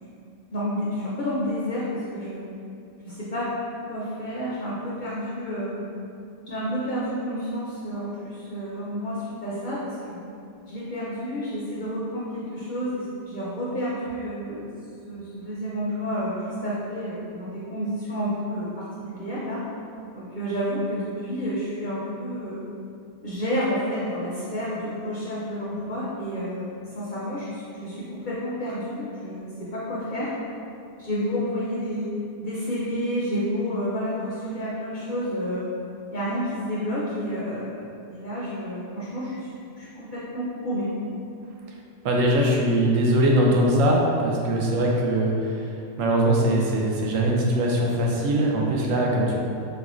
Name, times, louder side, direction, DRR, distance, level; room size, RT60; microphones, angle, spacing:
voice 1, 0.5-2.4 3.0-3.5 3.9-5.8 6.5-10.2 10.7-14.7 15.1-18.9 19.1-19.6 20.1-22.6 23.2-30.3 31.0-32.1 32.4-35.7 36.1-37.7 38.1-39.5 39.7-40.9, equal, 55° left, -8 dB, 0.5 m, -30 dB
voice 2, 42.0-45.5 46.0-49.4, right 1 dB, 85° right, -2 dB, 1.0 m, -21 dB
4.3 x 2.2 x 2.4 m, 2.6 s
omnidirectional pair, 1.3 m